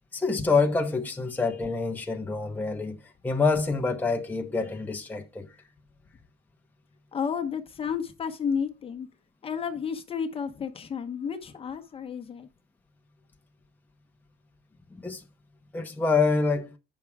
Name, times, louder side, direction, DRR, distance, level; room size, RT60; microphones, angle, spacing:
voice 1, 0.1-5.5 14.9-15.2 15.7-16.7, left 4 dB, 10° left, 0.9 m, -26 dB
voice 2, 7.1-9.1 9.4-12.5, left 6 dB, 35° left, 0.9 m, -32 dB
8.2 x 5.9 x 3.4 m
cardioid pair, 155°, 17 cm